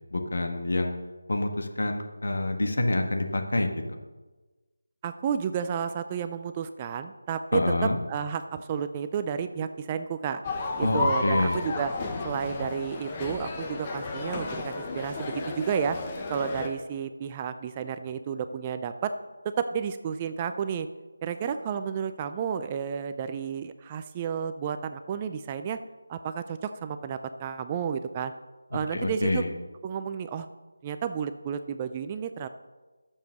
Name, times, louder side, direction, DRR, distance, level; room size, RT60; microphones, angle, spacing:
voice 1, 0.1-0.9 1.3-3.7 7.5-8.0 10.8-11.6 28.9-29.5, left 2 dB, 70° left, 5 dB, 1.6 m, -27 dB
voice 2, 5.0-10.4 10.8-11.9 12.2-16.0 16.3-19.1 19.4-20.9 21.2-25.8 26.1-28.3 28.7-29.4 29.8-30.5 30.8-32.5, right 7 dB, 15° right, 10 dB, 0.3 m, -31 dB
sound 1, 10.4-16.7, left 3 dB, 15° left, 0.8 m, -33 dB
9.3 x 7.2 x 6.4 m, 1.2 s
figure-of-eight pair, 175°, 0 cm